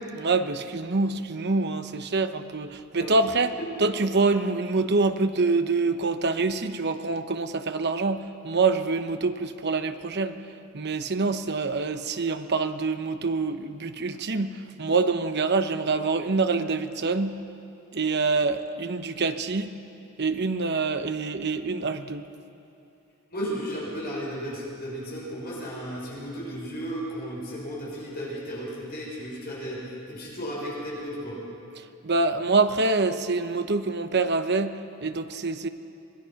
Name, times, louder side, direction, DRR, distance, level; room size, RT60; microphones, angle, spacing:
voice 1, 0.1-10.4 10.7-17.4 17.9-19.7 20.2-22.2 32.0-35.7, right 3 dB, 50° right, 9 dB, 0.9 m, -26 dB
voice 2, 23.3-29.8 30.1-31.4, equal, 45° left, -5 dB, 6.2 m, -34 dB
26.0 x 19.0 x 5.9 m, 3.0 s
head